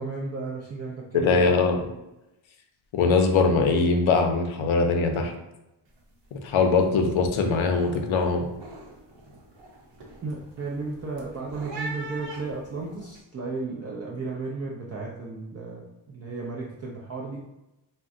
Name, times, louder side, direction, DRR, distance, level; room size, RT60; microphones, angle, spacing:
voice 1, 0.0-1.4 10.2-17.4, right 3 dB, 35° right, -4 dB, 0.4 m, -34 dB
voice 2, 1.1-1.9 2.9-5.3 6.3-8.4, left 4 dB, 70° left, 4 dB, 0.6 m, -22 dB
sound 1, 5.9-6.1 6.4-6.8 7.2-13.2, right 2 dB, 65° right, 0.8 m, -42 dB
2.4 x 2.2 x 3.6 m, 0.95 s
wide cardioid pair, 125°, 48 cm